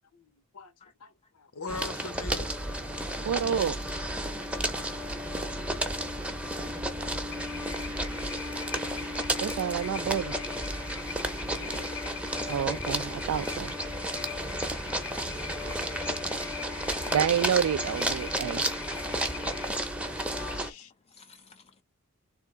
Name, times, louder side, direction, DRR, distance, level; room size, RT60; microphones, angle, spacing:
voice 1, 0.1-0.7 1.0-2.5 9.0-9.1 11.5-11.9 20.5-20.9, left 3 dB, 85° left, 0.9 m, -42 dB
sound 1, 1.7-20.7, right 1 dB, 5° right, 0.7 m, -33 dB
sound 2, 2.3-20.7, right 1 dB, 45° right, 0.7 m, -45 dB
voice 2, 3.3-3.8 9.4-10.3 12.5-13.7 17.1-18.6, right 8 dB, 75° right, 0.3 m, -28 dB
sound 3, 7.3-19.7, left 7 dB, 55° left, 0.7 m, -43 dB
voice 3, 11.7-12.3 12.7-13.6 14.1-16.1 17.1-17.2 18.1-18.3 18.8-20.5 21.1-21.8, left 4 dB, 25° left, 0.3 m, -52 dB
3.6 x 3.4 x 3.2 m
head